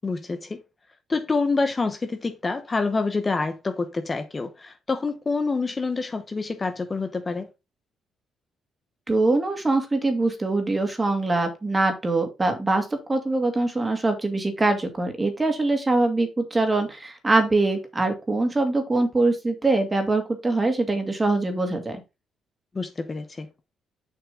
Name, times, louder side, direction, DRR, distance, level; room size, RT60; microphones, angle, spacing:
voice 1, 0.0-0.6 1.1-7.5 22.7-23.5, left 3 dB, 30° left, 1.0 m, -27 dB
voice 2, 9.1-22.0, right 2 dB, 20° right, 2.3 m, -23 dB
6.7 x 5.9 x 3.7 m
cardioid pair, 90°, 0 cm